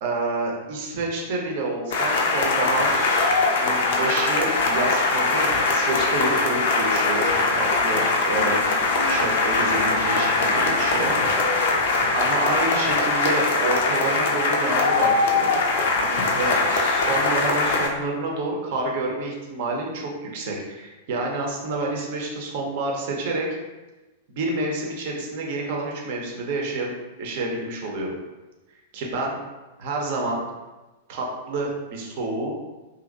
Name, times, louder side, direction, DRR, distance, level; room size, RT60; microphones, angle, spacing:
voice 1, 0.0-8.6 9.0-11.2 11.5-11.6 12.1-15.6 16.3-23.5 24.3-26.9 27.2-28.1 28.9-29.4 29.8-30.4 31.1-32.5, right 2 dB, 50° right, 0 dB, 0.6 m, -28 dB
sound 1, 1.9-17.9, left 3 dB, 55° left, 0.4 m, -21 dB
2.9 x 2.5 x 2.5 m, 1.1 s
figure-of-eight pair, 95°, 0 cm